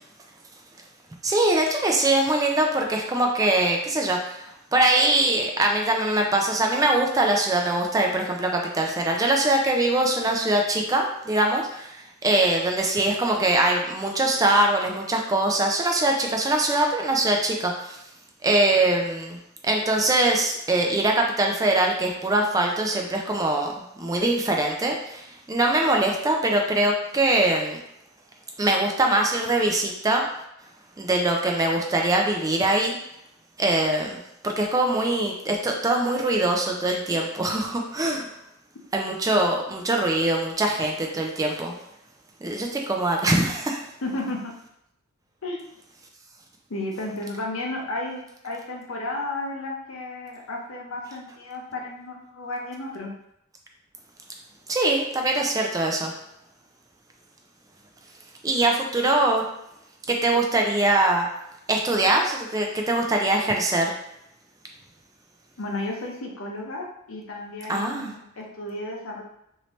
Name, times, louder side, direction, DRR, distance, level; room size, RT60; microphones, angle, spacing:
voice 1, 1.2-18.0 18.4-19.4 19.6-27.8 28.6-30.3 31.0-33.0 33.6-34.2 34.4-38.3 38.9-41.8 42.4-43.8 54.7-56.2 58.4-59.4 60.1-61.3 61.7-63.9 67.7-68.1, right 2 dB, 15° right, 2 dB, 0.3 m, -23 dB
voice 2, 44.0-44.5 45.4-45.6 46.7-53.1 65.6-69.2, left 2 dB, 70° left, 0 dB, 0.7 m, -33 dB
3.1 x 2.7 x 3.1 m, 0.78 s
head